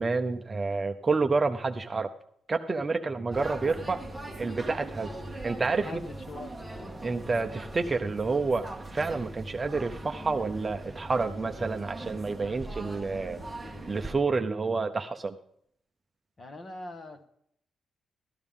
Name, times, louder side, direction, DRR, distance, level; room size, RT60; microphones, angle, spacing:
voice 1, 0.0-2.1 2.5-4.0 4.4-5.1 5.4-6.0 7.0-13.4 13.9-15.4, right 4 dB, 25° right, 6 dB, 0.7 m, -29 dB
sound 1, 3.3-14.1, right 1 dB, ahead, 1.2 m, -41 dB
voice 2, 5.8-6.6 16.4-17.3, left 2 dB, 30° left, 7 dB, 1.3 m, -42 dB
13.0 x 12.0 x 3.7 m, 0.70 s
cardioid pair, 135°, 0 cm